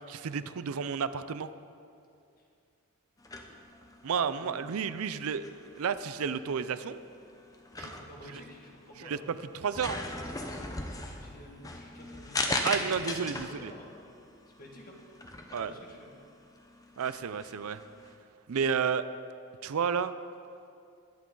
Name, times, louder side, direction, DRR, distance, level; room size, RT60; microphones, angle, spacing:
voice 1, 0.0-1.5 4.0-5.4 5.8-7.0 9.1-9.2 9.5-10.0 12.6-13.7 15.5-15.7 17.0-17.8 18.5-19.1 19.6-20.1, right 6 dB, 75° right, 13 dB, 0.5 m, -31 dB
sound 1, 3.2-18.2, left 2 dB, 15° left, 0.8 m, -39 dB
voice 2, 4.1-4.8 7.2-7.3 7.8-9.3 11.0-13.9 14.6-15.0 15.5-16.1, equal, 40° left, -1 dB, 1.9 m, -50 dB
21.5 x 8.5 x 3.9 m, 2.5 s
head